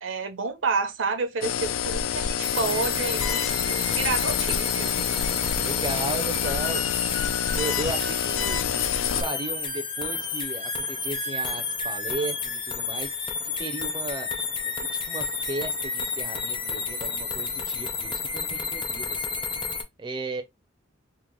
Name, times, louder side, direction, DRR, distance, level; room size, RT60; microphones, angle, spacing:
voice 1, 0.0-4.9, right 4 dB, 85° right, 0.7 m, -29 dB
sound 1, 1.4-9.2, left 8 dB, 85° left, 0.4 m, -27 dB
sound 2, 2.4-19.8, left 4 dB, 25° left, 0.5 m, -31 dB
voice 2, 5.6-8.9 9.2-14.3 14.6-19.3 20.0-20.4, right 2 dB, 25° right, 0.4 m, -35 dB
3.7 x 2.1 x 3.0 m
head